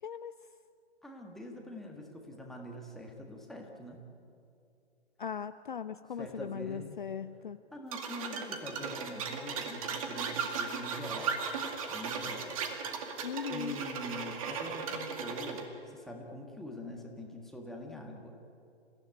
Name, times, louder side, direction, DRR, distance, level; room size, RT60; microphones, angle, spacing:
voice 1, 0.0-0.3 5.2-7.6 13.2-13.9, left 7 dB, 45° left, 12 dB, 0.6 m, -39 dB
voice 2, 1.0-4.0 6.2-7.0 7.7-11.4 11.7-12.6 13.5-18.4, left 1 dB, ahead, 0 dB, 1.8 m, -44 dB
sound 1, 7.9-15.6, right 5 dB, 30° right, 2.2 m, -37 dB
29.0 x 16.0 x 9.1 m, 2.6 s
figure-of-eight pair, 140°, 34 cm